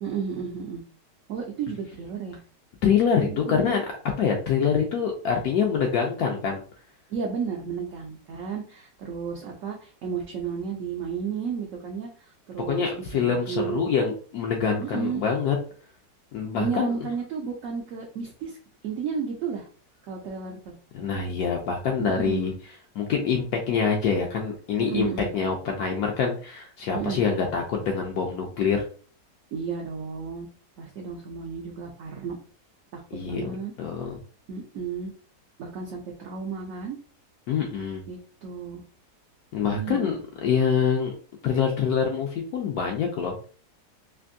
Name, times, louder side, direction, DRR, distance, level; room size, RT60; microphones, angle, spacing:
voice 1, 0.0-0.8 1.3-2.4 3.1-3.7 7.1-13.9 14.8-15.2 16.6-18.6 18.8-19.7 20.1-20.7 22.0-22.5 24.8-25.3 26.9-27.2 29.5-30.5 30.8-32.4 32.9-33.7 34.5-35.1 35.6-37.0 38.1-38.8 39.7-40.1, right 6 dB, 65° right, 0 dB, 0.8 m, -33 dB
voice 2, 2.8-3.9 4.2-6.6 12.7-15.6 16.3-16.9 20.9-22.5 23.0-28.9 33.1-33.5 33.8-34.1 37.5-38.0 39.5-41.1 41.4-43.5, left 6 dB, 70° left, 1 dB, 1.0 m, -25 dB
3.4 x 2.6 x 2.5 m, 0.41 s
omnidirectional pair, 1.9 m